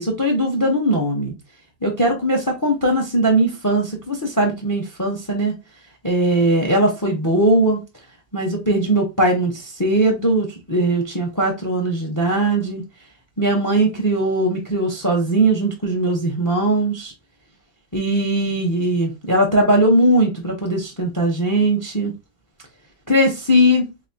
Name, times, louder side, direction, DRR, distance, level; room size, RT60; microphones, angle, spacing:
voice 1, 0.0-1.3 1.8-5.5 6.0-7.8 8.3-12.8 13.4-17.1 17.9-22.1 23.1-23.9, right 1 dB, 20° left, 0.4 m, -19 dB
4.0 x 3.5 x 2.7 m
omnidirectional pair, 1.8 m